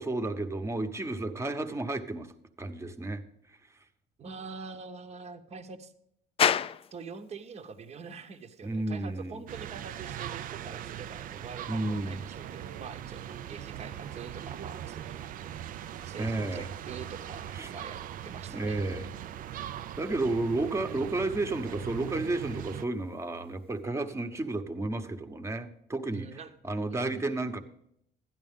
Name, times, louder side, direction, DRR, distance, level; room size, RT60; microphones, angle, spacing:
voice 1, 0.0-2.3 2.6-3.2 8.6-9.4 11.7-12.2 16.2-16.7 17.5-17.7 18.5-19.1 20.0-26.4 26.6-27.6, right 2 dB, 15° right, 1.0 m, -32 dB
voice 2, 4.2-5.9 6.9-18.8 26.1-26.5 26.9-27.2, right 5 dB, 40° right, 0.9 m, -45 dB
sound 1, 6.4-23.8, left 9 dB, 35° left, 0.3 m, -40 dB
sound 2, 9.5-22.8, right 11 dB, 55° right, 0.4 m, -40 dB
12.0 x 10.5 x 3.6 m
cardioid pair, 110°, 17 cm